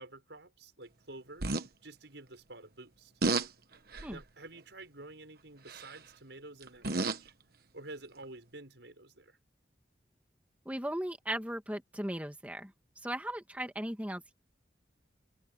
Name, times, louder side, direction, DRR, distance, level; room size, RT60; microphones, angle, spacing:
voice 1, 0.0-3.1 4.1-7.3 7.7-9.4, right 2 dB, 75° right, 6.1 m, -50 dB
sound 1, 1.4-1.7 3.2-3.5 3.9-4.2 5.7-6.0 6.6-7.3 8.2-8.3, right 3 dB, 55° right, 1.4 m, -31 dB
voice 2, 10.7-12.7 13.0-14.3, right 1 dB, 10° right, 2.0 m, -37 dB
head